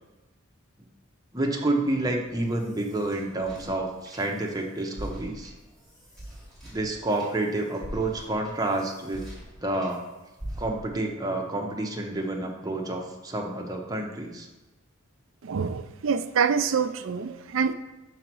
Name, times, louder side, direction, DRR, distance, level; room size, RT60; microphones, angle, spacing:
voice 1, 1.3-5.5 6.6-9.3 9.6-10.0 10.6-14.5, right 2 dB, 15° right, 0 dB, 0.8 m, -29 dB
sound 1, 2.4-4.6 4.9-10.0 10.4-11.1, equal, ahead, 2.4 m, -43 dB
voice 2, 15.4-17.7, right 6 dB, 65° right, 10 dB, 0.4 m, -26 dB
5.6 x 4.0 x 6.1 m, 1.1 s
head